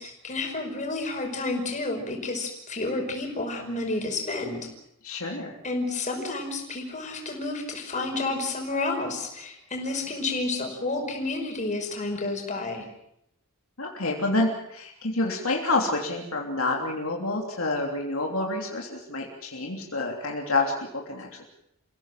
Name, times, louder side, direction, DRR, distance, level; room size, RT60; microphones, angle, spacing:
voice 1, 0.0-4.6 5.6-12.8, left 2 dB, 35° left, 2 dB, 5.5 m, -30 dB
voice 2, 5.0-5.6 13.8-21.4, left 2 dB, 70° left, 0 dB, 3.2 m, -28 dB
29.0 x 16.5 x 7.6 m, 0.77 s
head